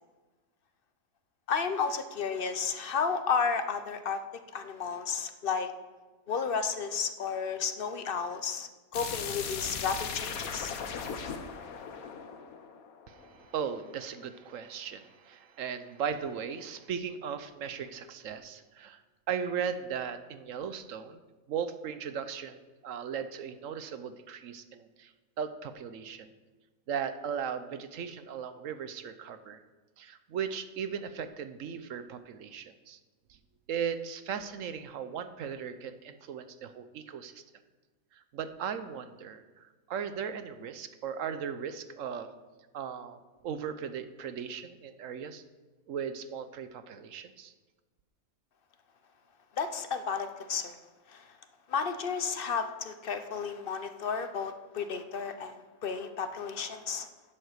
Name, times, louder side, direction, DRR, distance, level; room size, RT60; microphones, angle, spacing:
voice 1, 1.5-4.2 4.5-5.7 6.3-10.7 49.6-50.8 51.1-51.2 51.7-57.1, left 5 dB, 50° left, 9 dB, 0.8 m, -32 dB
sound 1, 8.9-13.7, left 6 dB, 85° left, 1.4 m, -38 dB
voice 2, 13.1-19.0 19.3-21.2 21.5-25.1 25.4-26.3 26.9-29.6 30.0-33.0 33.7-37.4 38.1-42.3 42.7-45.4 45.9-47.5, right 7 dB, 70° right, 11 dB, 1.1 m, -37 dB
10.5 x 7.6 x 6.6 m, 1.2 s
omnidirectional pair, 1.5 m